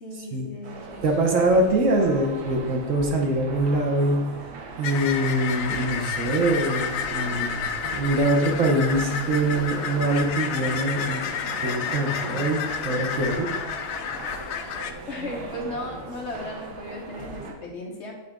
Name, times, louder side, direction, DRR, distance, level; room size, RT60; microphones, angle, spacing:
voice 1, 0.0-1.0 15.1-18.1, left 1 dB, 50° left, 0 dB, 1.1 m, -36 dB
sound 1, 0.6-17.5, right 3 dB, 80° right, 1.4 m, -39 dB
voice 2, 1.0-4.2 4.8-13.5, right 1 dB, 60° right, 1 dB, 1.2 m, -24 dB
sound 2, 4.8-14.9, left 7 dB, 70° left, 0.9 m, -30 dB
8.0 x 4.0 x 3.6 m, 1.1 s
omnidirectional pair, 1.6 m